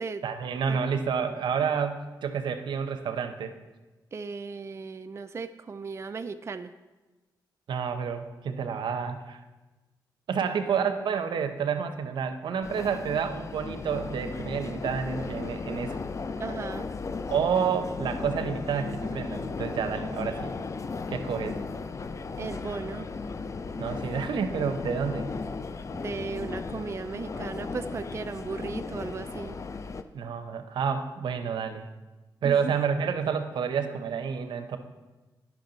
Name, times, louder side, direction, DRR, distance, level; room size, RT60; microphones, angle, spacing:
voice 1, 0.2-3.5 7.7-9.4 10.3-16.0 17.3-20.6 21.1-21.6 23.8-25.3 30.1-31.9 32.4-34.8, right 6 dB, 80° right, 8 dB, 0.7 m, -29 dB
voice 2, 4.1-6.7 10.4-10.5 16.4-16.9 22.4-23.1 25.9-29.6 32.4-32.7, right 4 dB, 35° right, 9 dB, 0.3 m, -36 dB
sound 1, 12.6-30.0, left 4 dB, 40° left, 0.5 m, -36 dB
10.0 x 6.0 x 3.9 m, 1.2 s
cardioid pair, 75°, 8 cm